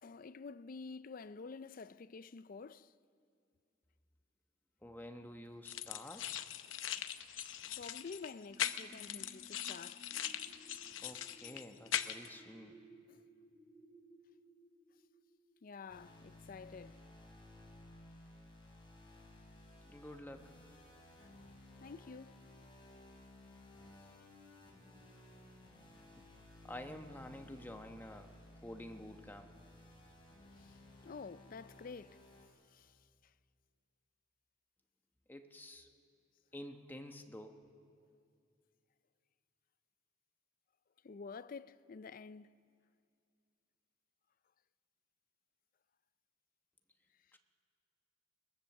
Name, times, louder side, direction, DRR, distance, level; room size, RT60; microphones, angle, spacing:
voice 1, 0.0-2.9 6.6-10.5 13.1-13.2 15.6-17.0 21.2-21.3 21.8-22.4 30.6-32.2 32.7-33.3 41.0-42.6, left 4 dB, 45° left, 0.4 m, -50 dB
voice 2, 4.8-6.3 11.0-12.8 19.9-20.5 26.2-26.3 26.6-28.3 28.6-29.5 35.3-35.9 36.5-37.5 47.3-47.4, left 1 dB, 10° left, 1.0 m, -49 dB
sound 1, 5.6-12.3, left 10 dB, 90° left, 0.7 m, -41 dB
sound 2, 8.5-15.8 16.3-16.4, right 2 dB, 50° right, 3.0 m, -61 dB
sound 3, 15.9-32.5, left 1 dB, 25° left, 4.3 m, -58 dB
22.5 x 19.5 x 7.2 m
head